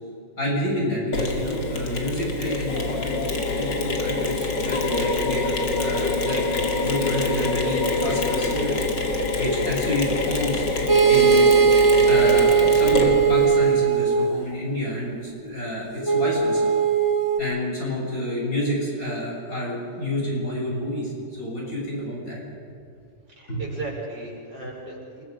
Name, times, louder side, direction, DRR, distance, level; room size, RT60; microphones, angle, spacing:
voice 1, 0.4-6.4 6.8-8.8 9.4-10.6 11.1-11.6 12.1-16.7 17.4-22.4 23.5-23.6, left 1 dB, 50° left, -4 dB, 7.9 m, -28 dB
Mechanisms, 1.1-13.5, left 3 dB, 80° left, 2.9 m, -25 dB
sound 1, 10.9-14.5 16.0-17.4, right 6 dB, 55° right, 0.3 m, -18 dB
voice 2, 23.4-25.2, right 2 dB, 80° right, -3 dB, 6.3 m, -36 dB
28.0 x 20.5 x 5.3 m, 2.5 s
omnidirectional pair, 1.9 m